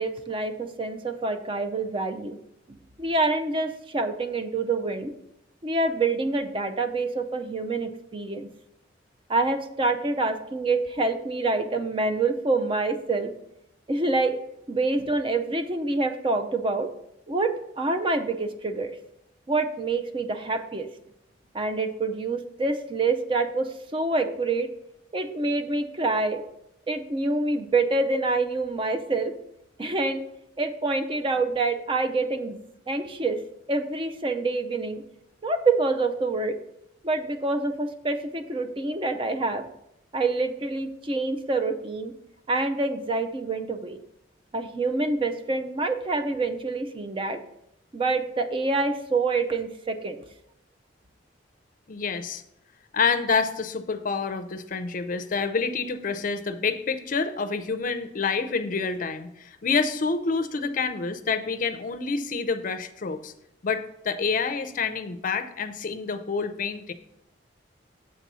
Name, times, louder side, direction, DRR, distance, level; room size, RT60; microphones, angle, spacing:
voice 1, 0.0-2.4 2.7-5.1 5.6-8.5 9.3-13.3 13.9-14.4 14.7-16.9 17.3-19.0 19.5-20.9 21.5-24.7 25.1-26.4 26.9-29.3 29.8-30.2 30.6-32.6 32.9-33.4 33.7-35.0 35.4-36.6 37.0-39.7 40.1-42.1 42.5-44.0 44.5-47.4 47.9-50.2, right 3 dB, 30° right, 8 dB, 0.5 m, -26 dB
voice 2, 51.9-52.4 52.9-63.3 63.6-66.9, left 5 dB, 45° left, 10 dB, 0.5 m, -28 dB
7.5 x 4.0 x 6.1 m, 0.80 s
head